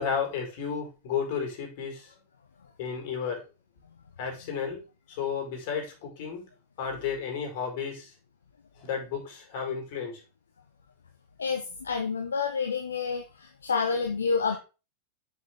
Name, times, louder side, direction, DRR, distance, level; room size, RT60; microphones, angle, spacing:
voice 1, 0.0-2.1 2.8-3.5 4.2-6.4 6.8-8.1 8.8-10.2, left 6 dB, 50° left, 4.7 m, -33 dB
voice 2, 11.4-14.6, left 5 dB, 70° left, 1.1 m, -29 dB
8.9 x 8.4 x 3.8 m
figure-of-eight pair, 90°, 0 cm